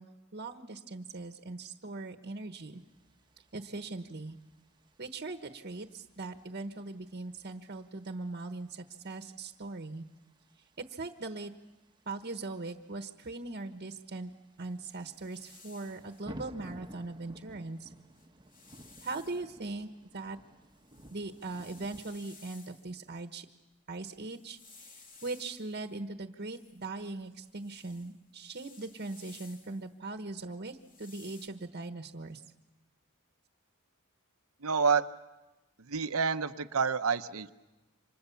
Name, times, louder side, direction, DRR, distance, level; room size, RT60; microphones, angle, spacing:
voice 1, 0.0-2.8 3.5-4.4 5.0-10.0 10.8-11.5 12.1-14.3 14.6-17.9 19.0-20.4 21.1-23.5 23.9-32.4, right 3 dB, 50° right, 7 dB, 1.2 m, -40 dB
sound 1, 2.7-22.0, right 1 dB, 20° right, 1.1 m, -55 dB
sound 2, 14.7-16.2 17.6-17.7 18.0-19.5 20.1-23.1 24.0-25.9 26.5-29.9 30.7-31.5, left 4 dB, 40° left, 2.7 m, -57 dB
voice 2, 34.6-35.1 35.8-37.5, right 5 dB, 85° right, 10 dB, 0.9 m, -28 dB
29.0 x 26.0 x 7.1 m, 1.1 s
head